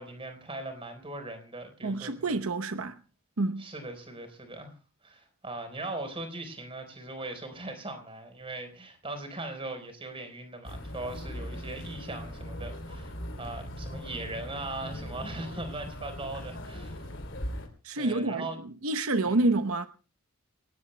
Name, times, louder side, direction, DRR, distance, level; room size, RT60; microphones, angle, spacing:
voice 1, 0.0-2.4 3.6-4.7 5.0-17.1 18.0-18.6 19.2-19.4, right 2 dB, 25° right, 4.3 m, -39 dB
voice 2, 1.8-3.0 3.4-3.7 17.8-18.5 18.8-19.9, right 2 dB, 75° right, 0.9 m, -28 dB
sound 1, 10.6-17.7, equal, 60° left, 3.3 m, -39 dB
28.5 x 18.0 x 2.2 m
head